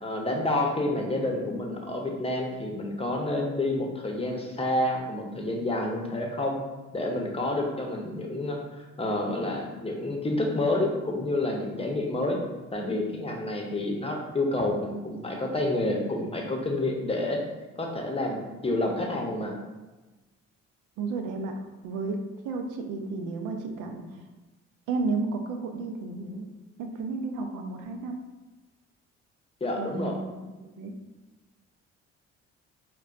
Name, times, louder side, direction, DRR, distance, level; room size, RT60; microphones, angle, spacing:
voice 1, 0.0-6.6 6.9-8.6 9.0-12.4 12.7-17.4 17.8-19.6 29.6-30.1, left 2 dB, 20° left, 0 dB, 0.7 m, -29 dB
voice 2, 21.0-21.5 21.8-22.2 22.4-24.0 24.9-26.5 26.8-28.2 29.8-30.9, right 3 dB, 70° right, 4 dB, 0.5 m, -32 dB
4.1 x 2.2 x 2.4 m, 1.2 s
hypercardioid pair, 55°, 32 cm